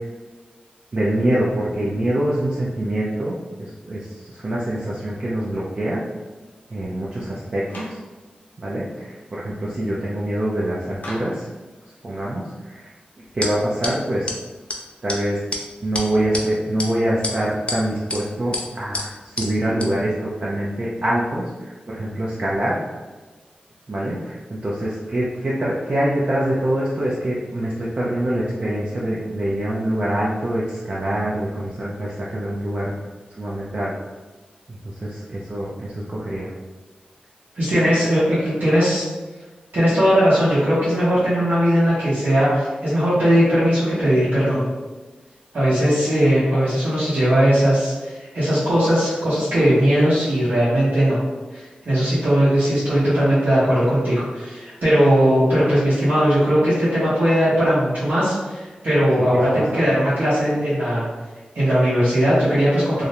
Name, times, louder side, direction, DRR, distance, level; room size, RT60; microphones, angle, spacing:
voice 1, 0.9-6.0 6.7-8.0 8.6-11.5 12.0-12.9 13.3-14.3 15.0-15.4 15.8-22.8 23.9-32.9 33.4-33.9 34.7-36.5 59.2-59.6, right 1 dB, 45° right, -6 dB, 0.4 m, -25 dB
Clapping, 7.7-8.1 11.0-11.5, left 1 dB, 70° left, 0.8 m, -36 dB
sound 1, 13.4-13.5 13.8-13.9 14.3-14.4 14.7-14.8 15.1-15.2 15.5-15.6 15.9-16.4 16.8-16.9 17.2-17.8 18.1-18.2 18.5-18.6 18.9-19.0 19.4-19.5 19.8-19.9, left 2 dB, 40° left, 0.5 m, -26 dB
voice 2, 37.5-39.0 39.7-44.6 45.5-51.2 51.5-61.1 61.5-63.0, equal, 75° right, -12 dB, 0.8 m, -18 dB
2.4 x 2.0 x 2.8 m, 1.3 s
cardioid pair, 45°, 3 cm